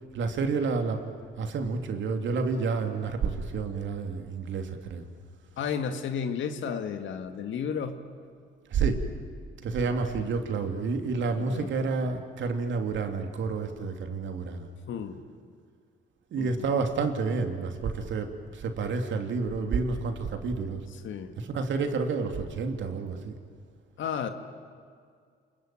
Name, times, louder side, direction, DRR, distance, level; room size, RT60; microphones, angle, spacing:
voice 1, 0.1-1.0 1.4-5.1 8.7-9.0 9.6-14.7 16.3-20.8 21.4-23.4, right 4 dB, 70° right, 5 dB, 3.0 m, -29 dB
voice 2, 5.6-8.0 11.4-11.7 14.9-15.2 16.4-16.6 21.0-21.4 24.0-24.3, left 7 dB, 70° left, 8 dB, 2.0 m, -32 dB
28.5 x 21.5 x 9.2 m, 2.2 s
cardioid pair, 90°, 20 cm